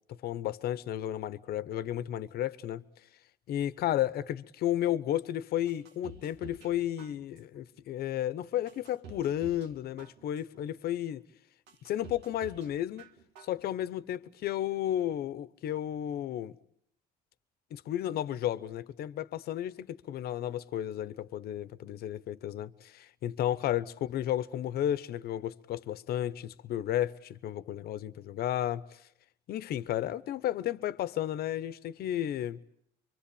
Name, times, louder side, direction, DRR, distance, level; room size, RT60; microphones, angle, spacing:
voice 1, 0.1-2.8 3.5-11.2 11.8-13.1 13.4-16.6 17.7-29.1 29.5-32.6, left 12 dB, 65° left, 1.0 m, -33 dB
sound 1, 5.7-6.7 7.0-7.6 8.1-8.2 8.7-9.7 10.0-10.6 11.1-11.2 11.7-12.7 13.0-13.6 13.9-14.0, right 4 dB, 80° right, 2.2 m, -49 dB
25.0 x 24.5 x 8.6 m
cardioid pair, 110°, 17 cm